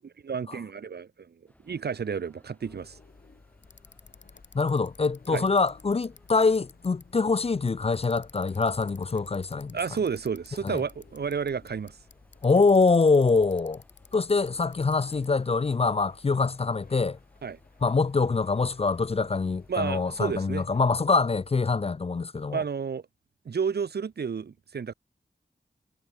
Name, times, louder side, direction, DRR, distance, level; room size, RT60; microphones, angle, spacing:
voice 1, 0.0-1.4 1.6-3.0 5.3-5.5 9.7-12.0 17.4-17.6 19.7-20.7 22.5-23.0 23.4-24.9, right 6 dB, 60° right, 0.6 m, -31 dB
sound 1, 1.5-20.4, left 1 dB, 10° left, 6.8 m, -63 dB
sound 2, 2.6-21.5, left 4 dB, 50° left, 5.4 m, -57 dB
Bicycle, 3.6-15.4, left 5 dB, 70° left, 2.4 m, -56 dB
voice 2, 4.5-9.8 10.6-10.8 12.4-13.8 14.1-17.2 17.8-22.6, left 4 dB, 30° left, 0.4 m, -24 dB
wide cardioid pair, 90°, 19 cm